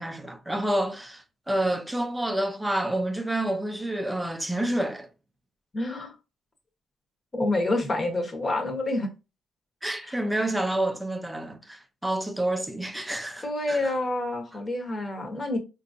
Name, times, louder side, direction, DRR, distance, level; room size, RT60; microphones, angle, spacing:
voice 1, 0.0-5.1 9.8-13.8, right 1 dB, 5° right, 0.6 m, -28 dB
voice 2, 5.7-6.1 7.3-9.1 10.0-10.2 13.4-15.6, left 2 dB, 30° left, 1.1 m, -28 dB
4.2 x 2.6 x 2.6 m
cardioid pair, 105°, 0 cm